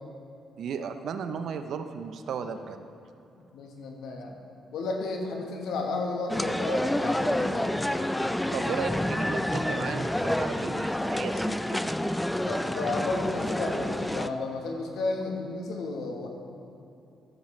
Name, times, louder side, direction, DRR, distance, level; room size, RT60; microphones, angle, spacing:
voice 1, 0.6-2.9 8.5-11.9, right 6 dB, 70° right, 8 dB, 0.6 m, -35 dB
voice 2, 3.5-4.4 4.7-7.7 12.4-16.3, left 3 dB, 80° left, 2 dB, 1.2 m, -32 dB
sound 1, 6.3-14.3, left 1 dB, 5° left, 0.3 m, -28 dB
13.0 x 7.3 x 3.2 m, 2.7 s
cardioid pair, 90°, 0 cm